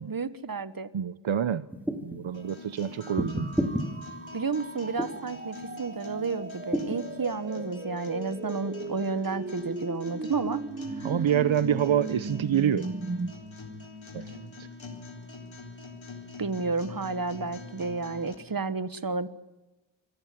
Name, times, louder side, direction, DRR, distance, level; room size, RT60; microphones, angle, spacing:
voice 1, 0.0-0.9 4.3-10.6 11.0-11.1 16.4-19.3, right 4 dB, 50° right, 14 dB, 1.4 m, -31 dB
voice 2, 0.9-1.6 2.0-3.5 11.0-12.9 14.1-14.3 14.6-14.7, right 9 dB, 90° right, 16 dB, 0.8 m, -27 dB
sound 1, 1.7-2.2 3.2-3.9 5.0-5.3 6.7-7.0, equal, 5° right, 2.9 m, -29 dB
sound 2, 2.3-18.4, left 3 dB, 75° left, 3.9 m, -45 dB
sound 3, 3.0-13.3, right 3 dB, 25° right, 0.8 m, -38 dB
26.5 x 16.5 x 9.7 m, 1.1 s
wide cardioid pair, 55°, 46 cm